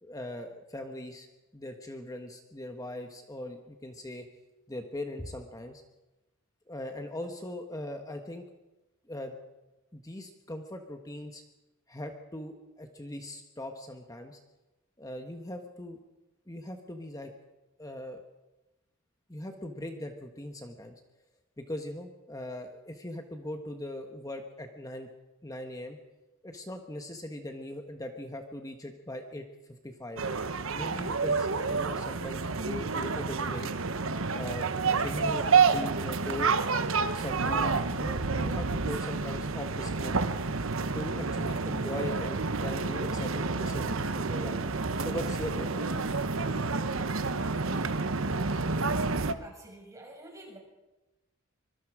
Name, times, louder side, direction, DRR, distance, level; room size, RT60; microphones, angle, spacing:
voice 1, 0.0-1.3 1.5-4.2 4.7-5.8 6.7-8.5 9.1-9.3 9.9-11.4 11.9-14.4 15.0-16.0 16.5-17.3 17.8-18.2 19.3-21.0 21.6-25.1 25.4-26.0 26.4-29.4 29.8-30.2 30.7-33.7 34.3-34.7 34.9-36.5 37.1-40.1 40.9-44.6 45.0-46.0, left 1 dB, 15° left, 5 dB, 1.4 m, -40 dB
sound 1, 30.2-49.3, right 4 dB, 75° right, 1.1 m, -29 dB
voice 2, 49.4-50.6, right 1 dB, 15° right, 0 dB, 6.3 m, -48 dB
25.0 x 22.5 x 5.0 m, 1.0 s
head